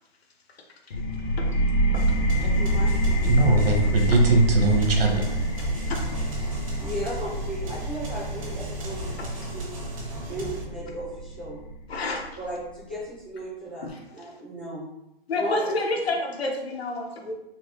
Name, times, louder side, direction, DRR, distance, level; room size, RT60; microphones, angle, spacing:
sound 1, 0.9-12.3, right 1 dB, 50° left, 0.8 m, -27 dB
sound 2, 1.9-10.6, right 1 dB, 35° right, 0.6 m, -37 dB
voice 1, 2.4-3.2 4.0-4.4 6.8-9.1 9.4-9.7 10.3-11.6 12.4-13.8 14.1-14.8 15.3-15.7, equal, 10° left, -11 dB, 0.4 m, -36 dB
voice 2, 3.2-5.2, right 2 dB, 65° right, 1 dB, 1.1 m, -20 dB
voice 3, 9.2-9.5 11.9-12.3 13.8-14.3 15.3-17.3, left 2 dB, 85° left, 2 dB, 0.9 m, -29 dB
3.9 x 2.7 x 3.1 m, 0.87 s
hypercardioid pair, 175°, 30 cm